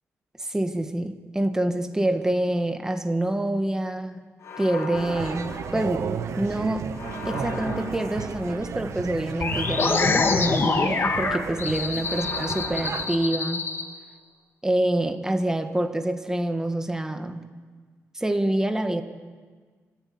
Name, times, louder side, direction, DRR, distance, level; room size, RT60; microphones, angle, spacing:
voice 1, 0.4-4.3 4.6-13.7 14.6-17.5 18.1-19.0, right 1 dB, 10° right, 7 dB, 1.8 m, -26 dB
sound 1, 4.4-6.3 6.9-8.7 9.4-11.3 12.0-13.8, left 3 dB, 65° left, 5.3 m, -38 dB
sound 2, 4.9-13.1, right 6 dB, 65° right, 1.6 m, -34 dB
sound 3, 9.4-13.8, left 4 dB, 45° left, 2.2 m, -25 dB
25.5 x 14.0 x 9.8 m, 1.5 s
cardioid pair, 115°, 6 cm